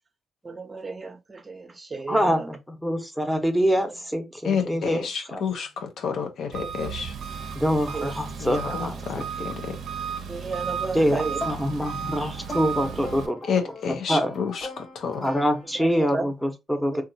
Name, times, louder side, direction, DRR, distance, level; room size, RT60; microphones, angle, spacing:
voice 1, 0.4-2.5 4.7-4.9 6.8-6.9 7.9-8.1 10.3-11.4 16.0-16.3 16.9-17.0, right 3 dB, 30° right, 0.6 m, -33 dB
voice 2, 2.1-5.4 7.5-9.5 10.9-13.4 13.9-14.3 15.2-17.0, equal, 5° left, 0.7 m, -25 dB
voice 3, 4.4-7.1 8.4-9.8 13.5-15.2, left 6 dB, 75° left, 0.5 m, -29 dB
Engine, 6.5-13.3, right 7 dB, 70° right, 0.4 m, -34 dB
sound 1, 11.4-16.0, left 2 dB, 40° left, 1.2 m, -39 dB
2.7 x 2.3 x 2.6 m
cardioid pair, 75°, 0 cm